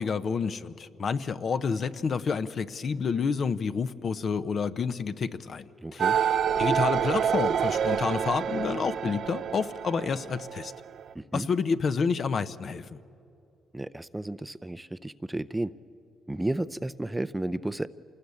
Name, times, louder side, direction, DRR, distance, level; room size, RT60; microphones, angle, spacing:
voice 1, 0.0-10.7 11.3-12.9, left 5 dB, 50° left, 12 dB, 0.8 m, -29 dB
voice 2, 5.8-6.2 11.1-11.5 13.7-15.7 16.3-17.9, right 1 dB, 10° right, 13 dB, 0.5 m, -32 dB
sound 1, 6.0-11.1, right 8 dB, 65° right, 0.5 m, -27 dB
26.5 x 19.5 x 8.5 m, 2.7 s
cardioid pair, 90°, 0 cm